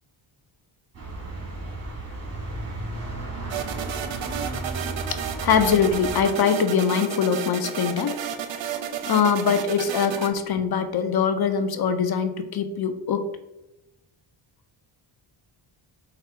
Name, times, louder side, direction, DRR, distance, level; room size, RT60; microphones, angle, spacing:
sound 1, 0.9-6.2, right 2 dB, 30° right, 1.5 m, -34 dB
sound 2, 3.5-10.3, right 8 dB, 70° right, 0.6 m, -32 dB
voice 1, 5.1-8.2 9.1-13.3, left 6 dB, 55° left, 10 dB, 0.5 m, -23 dB
4.8 x 2.3 x 4.3 m, 0.91 s
cardioid pair, 100°, 48 cm